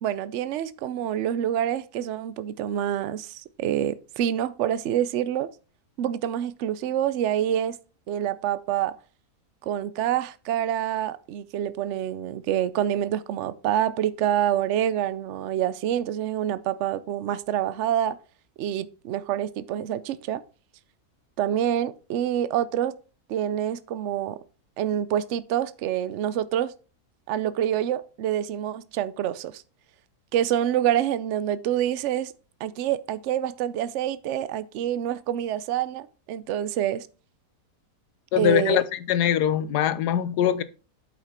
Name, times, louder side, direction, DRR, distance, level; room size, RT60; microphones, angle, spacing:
voice 1, 0.0-5.5 6.0-7.8 8.1-9.0 9.6-18.2 18.6-20.4 21.4-23.0 23.3-24.4 24.8-26.7 27.3-29.6 30.3-32.3 32.6-37.1 38.4-38.8, right 11 dB, 60° right, 0.8 m, -27 dB
voice 2, 38.3-40.6, left 10 dB, 90° left, 1.3 m, -22 dB
8.4 x 5.7 x 4.3 m
omnidirectional pair, 1.7 m